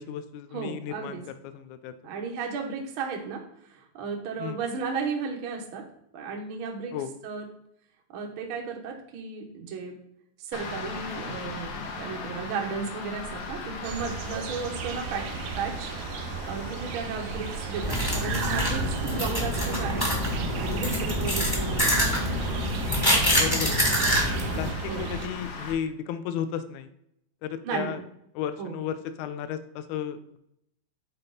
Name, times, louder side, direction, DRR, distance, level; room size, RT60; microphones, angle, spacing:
voice 1, 0.0-2.1 4.4-4.6 6.9-7.1 23.3-24.2 24.5-26.9 27.4-28.0 28.4-30.4, left 9 dB, 85° left, 11 dB, 1.8 m, -34 dB
voice 2, 0.5-1.2 2.0-5.8 6.1-6.9 7.2-7.5 8.1-9.9 10.4-15.2 15.6-15.9 16.5-20.0 20.6-22.4 24.9-25.1 27.6-28.0 28.6-28.8, right 5 dB, 70° right, 1 dB, 1.3 m, -34 dB
City Street, 10.5-25.7, left 3 dB, 65° left, 2.1 m, -38 dB
sound 1, 13.8-25.3, right 9 dB, 85° right, 1.8 m, -36 dB
sound 2, 17.8-24.7, equal, 10° left, 1.0 m, -26 dB
8.8 x 4.2 x 3.9 m, 0.75 s
omnidirectional pair, 4.0 m